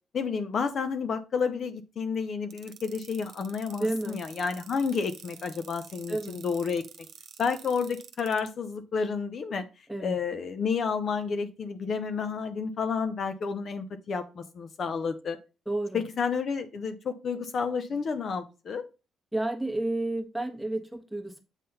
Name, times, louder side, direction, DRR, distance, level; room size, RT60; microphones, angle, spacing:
voice 1, 0.1-6.8 7.4-9.6 10.0-15.4 15.9-18.9, left 5 dB, 55° left, 0.7 m, -30 dB
sound 1, 2.5-8.5, right 8 dB, 65° right, 1.1 m, -48 dB
voice 2, 3.8-4.2 6.1-6.4 9.9-10.2 15.7-16.0 19.3-21.4, right 2 dB, ahead, 1.4 m, -31 dB
8.1 x 3.8 x 4.1 m
cardioid pair, 90°, 0 cm